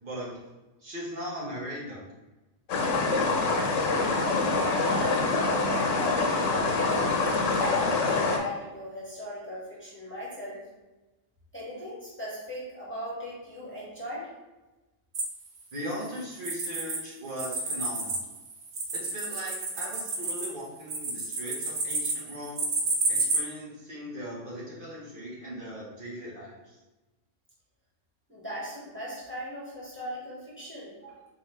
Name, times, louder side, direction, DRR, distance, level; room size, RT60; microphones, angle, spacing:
voice 1, 0.0-0.4 0.8-2.1 15.7-18.2 18.9-22.7 23.1-26.8, equal, 45° right, -6 dB, 1.4 m, -39 dB
sound 1, 2.7-8.4, left 3 dB, 80° left, 1.1 m, -25 dB
voice 2, 4.5-6.2 6.7-10.6 11.5-14.3 28.3-31.3, equal, 10° left, -7 dB, 1.2 m, -38 dB
sound 2, 15.1-17.0 17.3-23.4, right 3 dB, 65° right, 1.0 m, -30 dB
4.2 x 3.8 x 3.2 m, 1.1 s
omnidirectional pair, 1.3 m